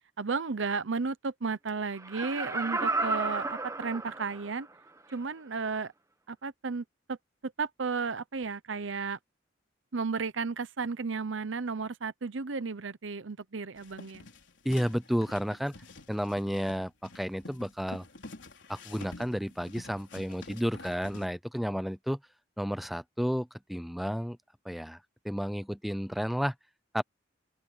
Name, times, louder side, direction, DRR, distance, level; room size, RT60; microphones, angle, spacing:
voice 1, 0.2-4.7 5.1-5.9 6.3-7.2 7.4-9.2 9.9-14.3, right 4 dB, 90° right, 0.8 m, -33 dB
Laughter, 2.0-4.6 5.1-5.2, right 3 dB, 15° right, 1.2 m, -32 dB
sound 1, 13.8-21.3, left 2 dB, 75° left, 4.1 m, -48 dB
voice 2, 14.6-15.7 16.1-18.0 18.7-22.2 22.6-24.4 24.6-25.0 25.2-26.5 26.9-27.0, equal, ahead, 0.5 m, -32 dB
head